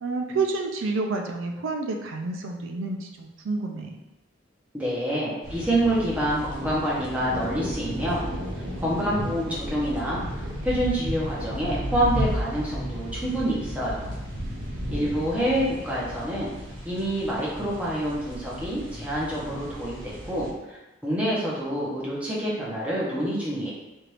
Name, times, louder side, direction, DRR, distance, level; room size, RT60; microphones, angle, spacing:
voice 1, 0.0-3.9, right 3 dB, 85° right, 3 dB, 0.4 m, -29 dB
voice 2, 4.7-8.3 8.8-10.2 10.6-14.1 14.9-16.5 16.8-20.8 21.0-23.7, right 1 dB, 5° right, -7 dB, 0.8 m, -27 dB
sound 1, 5.4-20.5, equal, 70° right, 0.9 m, -34 dB
4.5 x 2.5 x 3.2 m, 1.0 s
head